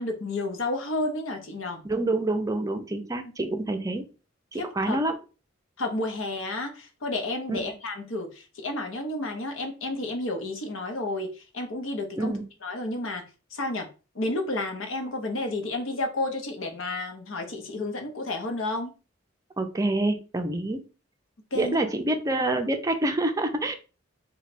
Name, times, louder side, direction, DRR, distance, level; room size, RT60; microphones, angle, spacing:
voice 1, 0.0-1.8 3.5-3.6 4.5-5.0 5.8-13.2 13.5-13.9 14.1-18.9 21.5-21.8, left 2 dB, 80° left, 4 dB, 0.8 m, -31 dB
voice 2, 1.8-4.1 4.5-5.2 7.5-7.6 12.2-12.4 19.6-20.8 21.5-23.8, right 2 dB, 15° right, 6 dB, 0.4 m, -27 dB
3.1 x 2.2 x 4.1 m, 0.33 s
head